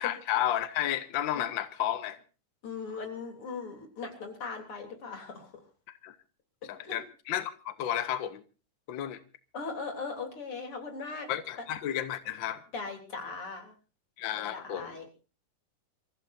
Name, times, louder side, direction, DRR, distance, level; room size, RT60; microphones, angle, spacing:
voice 1, 0.0-2.2 6.0-6.2 6.7-8.4 8.9-9.2 11.3-12.6 14.2-15.0, left 11 dB, 70° left, 1.1 m, -32 dB
voice 2, 2.6-5.6 6.8-7.0 9.5-11.3 12.7-13.7 14.4-15.1, left 4 dB, 45° left, 4.2 m, -39 dB
28.0 x 15.0 x 2.7 m
omnidirectional pair, 3.7 m